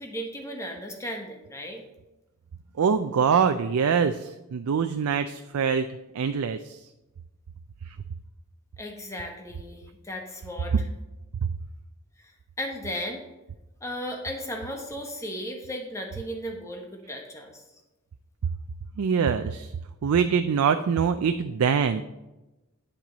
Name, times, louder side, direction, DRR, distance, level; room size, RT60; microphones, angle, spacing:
voice 1, 0.0-1.8 8.8-10.8 12.6-13.2 13.8-17.6, equal, 15° left, 2 dB, 1.2 m, -35 dB
voice 2, 2.8-5.9 6.1-6.9 7.9-8.0 11.4-11.5 19.0-19.7 20.0-22.0, right 6 dB, 90° right, 9 dB, 0.4 m, -24 dB
8.9 x 7.5 x 4.0 m, 1.0 s
head